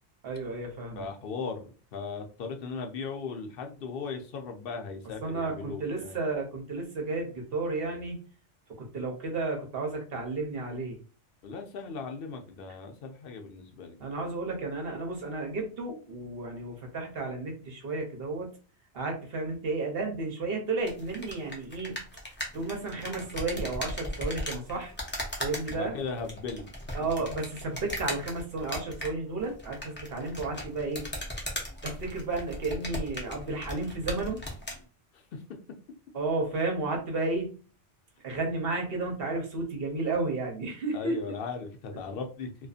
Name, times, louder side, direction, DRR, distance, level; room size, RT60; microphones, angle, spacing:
voice 1, 0.2-1.0 5.2-8.2 8.8-11.0 14.0-18.5 18.9-22.0 22.5-24.9 25.4-25.9 26.9-31.0 31.8-34.4 36.1-37.5 38.2-41.2, right 3 dB, 60° right, 2 dB, 0.9 m, -32 dB
voice 2, 1.0-6.2 11.4-14.0 25.7-26.7 35.1-35.4 40.9-42.5, left 5 dB, 65° left, 4 dB, 0.7 m, -37 dB
sound 1, 20.8-34.8, left 1 dB, 15° left, 0.4 m, -38 dB
2.5 x 2.4 x 2.4 m, 0.37 s
omnidirectional pair, 1.2 m